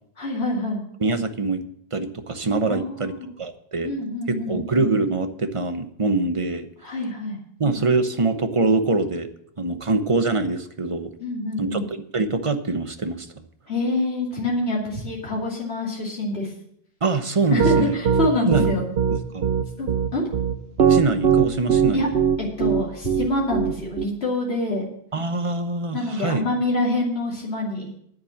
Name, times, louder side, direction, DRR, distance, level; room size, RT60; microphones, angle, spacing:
voice 1, 0.2-0.8 2.7-3.3 3.8-4.6 6.8-7.4 11.2-11.9 13.7-16.5 17.5-18.9 19.8-20.2 21.9-22.1 22.6-24.9 25.9-27.9, left 2 dB, 90° left, -4 dB, 2.8 m, -26 dB
voice 2, 1.0-1.6 1.9-3.1 3.4-3.9 4.3-6.7 7.6-9.3 9.6-11.1 11.6-11.9 12.1-13.3 17.0-18.0 18.5-18.8 19.3-19.5 20.9-22.1 25.1-26.4, right 3 dB, 35° right, 9 dB, 0.9 m, -24 dB
Piano, 17.6-24.0, right 7 dB, 80° right, 1.1 m, -19 dB
9.9 x 8.0 x 7.1 m, 0.69 s
omnidirectional pair, 1.0 m